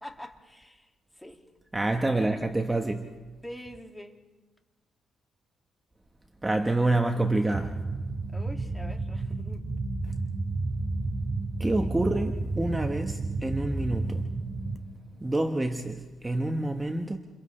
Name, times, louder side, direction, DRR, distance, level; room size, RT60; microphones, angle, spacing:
voice 1, 0.0-1.4 2.1-2.4 3.4-4.2 8.3-9.7, equal, 5° left, 2.3 m, -45 dB
voice 2, 1.7-3.1 6.4-7.8 11.6-14.2 15.2-17.2, right 2 dB, 15° right, 1.3 m, -27 dB
sound 1, 7.5-14.8, right 3 dB, 35° right, 2.0 m, -31 dB
29.0 x 28.5 x 3.3 m
cardioid pair, 90°, 0 cm